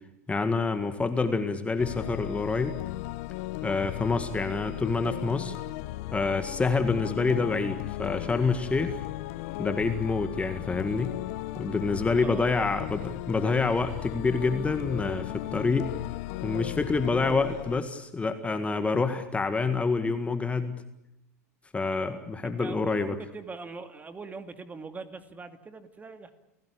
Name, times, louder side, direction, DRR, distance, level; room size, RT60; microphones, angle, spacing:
voice 1, 0.3-2.8 3.6-5.6 6.1-9.0 9.6-11.1 11.6-15.9 16.4-20.8 21.7-23.1, left 4 dB, 15° left, 9 dB, 1.9 m, -27 dB
sound 1, 1.8-17.8, left 18 dB, 55° left, 0.9 m, -36 dB
voice 2, 12.1-12.8 20.0-20.2 22.4-26.3, right 4 dB, 20° right, 10 dB, 2.3 m, -42 dB
29.5 x 17.0 x 8.5 m, 0.87 s
figure-of-eight pair, 90°, 9 cm